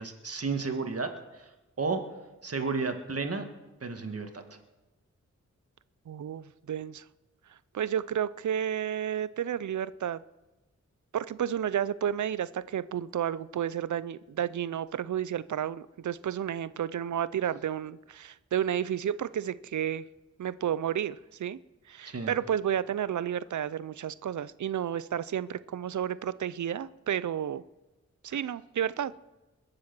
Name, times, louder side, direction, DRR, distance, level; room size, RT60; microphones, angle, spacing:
voice 1, 0.0-1.5 1.8-2.0 2.4-3.4 3.8-4.4 22.1-22.4, right 4 dB, 55° right, 5 dB, 1.8 m, -32 dB
voice 2, 6.1-7.0 7.7-10.2 11.1-20.1 20.4-21.6 21.9-27.6 28.2-29.1, right 9 dB, 80° right, 17 dB, 0.5 m, -31 dB
21.5 x 7.6 x 6.0 m, 1.1 s
wide cardioid pair, 65°, 29 cm